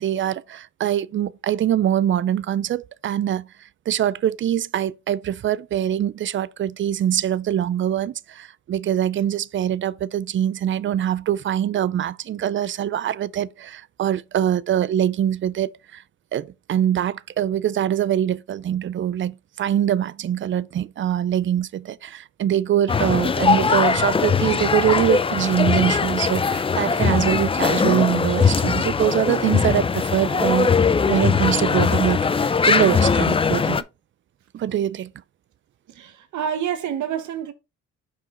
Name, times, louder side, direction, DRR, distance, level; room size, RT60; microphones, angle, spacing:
voice 1, 0.0-3.5 3.9-16.0 16.3-30.7 31.0-33.8 34.5-35.1, right 10 dB, 40° right, 0.4 m, -23 dB
sound 1, 22.9-33.8, left 5 dB, 20° left, 0.4 m, -20 dB
voice 2, 35.9-37.5, right 9 dB, 75° right, 1.2 m, -28 dB
5.6 x 4.8 x 3.7 m
cardioid pair, 90°, 30 cm